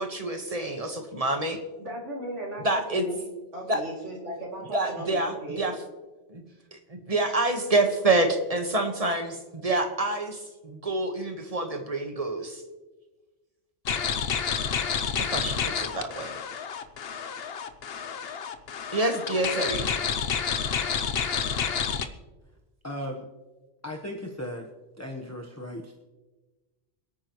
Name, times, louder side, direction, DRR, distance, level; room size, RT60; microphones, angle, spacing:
voice 1, 0.0-1.6 2.6-3.0 3.7-3.8 4.7-5.7 6.3-6.4 6.7-12.6 15.3-16.4 18.9-19.9, right 2 dB, 30° right, 5 dB, 1.5 m, -27 dB
voice 2, 1.8-3.3 3.5-5.7, right 1 dB, 75° right, -4 dB, 3.1 m, -36 dB
sound 1, 13.9-22.1, left 7 dB, 60° left, 1.0 m, -29 dB
voice 3, 22.8-23.2 23.8-24.7 25.0-26.0, left 1 dB, 15° left, -1 dB, 1.1 m, -36 dB
27.0 x 9.2 x 3.1 m, 1.2 s
omnidirectional pair, 1.2 m